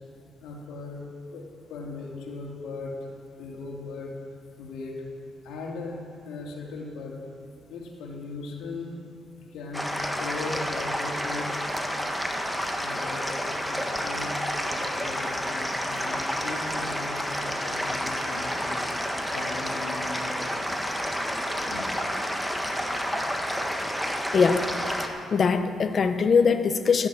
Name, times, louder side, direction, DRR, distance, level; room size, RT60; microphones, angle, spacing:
voice 1, 0.4-1.0 1.3-1.4 1.7-3.1 3.4-4.2 4.6-5.0 5.4-6.0 6.2-7.2 7.7-9.0 9.5-9.9 10.2-11.6 12.8-18.8 19.3-20.4 21.7-21.8, left 3 dB, 85° left, -2 dB, 2.8 m, -38 dB
sound 1, 9.7-25.1, equal, ahead, 1.5 m, -30 dB
voice 2, 24.3-24.7 25.0-27.1, left 5 dB, 45° left, 9 dB, 0.8 m, -22 dB
13.0 x 11.0 x 7.5 m, 2.6 s
cardioid pair, 90°, 0 cm